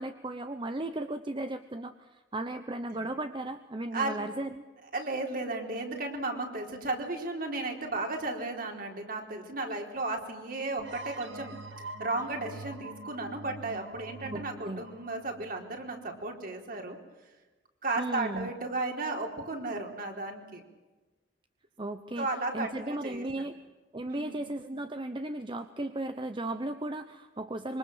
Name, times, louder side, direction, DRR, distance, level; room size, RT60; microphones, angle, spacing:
voice 1, 0.0-4.6 14.3-14.9 18.0-18.5 21.8-22.3 22.5-23.6 23.9-27.8, right 2 dB, 25° right, 9 dB, 0.9 m, -36 dB
voice 2, 4.9-11.6 12.0-17.0 17.8-20.6 22.2-23.3 24.1-24.5, right 2 dB, 50° right, 2 dB, 4.1 m, -34 dB
sound 1, 10.8-16.3, right 2 dB, 85° right, 2.0 m, -44 dB
26.5 x 24.0 x 7.4 m, 1.2 s
head